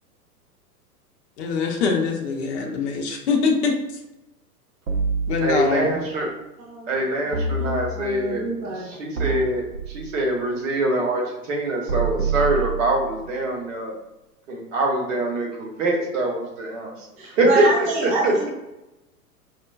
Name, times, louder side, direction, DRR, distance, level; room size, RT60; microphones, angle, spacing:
voice 1, 1.4-3.7 5.3-6.0, left 5 dB, 45° left, 1 dB, 0.6 m, -23 dB
sound 1, 4.9-5.9 7.3-8.3 9.2-10.2 11.9-13.3, right 4 dB, 75° right, 0.9 m, -27 dB
voice 2, 5.4-6.3 6.9-8.5 8.8-13.9 14.5-18.5, right 1 dB, 50° right, -1 dB, 1.1 m, -24 dB
voice 3, 7.2-8.9 9.1-9.4 17.2-18.5, right 2 dB, 15° right, -6 dB, 0.5 m, -27 dB
4.8 x 2.1 x 2.3 m, 0.97 s
figure-of-eight pair, 100°, 47 cm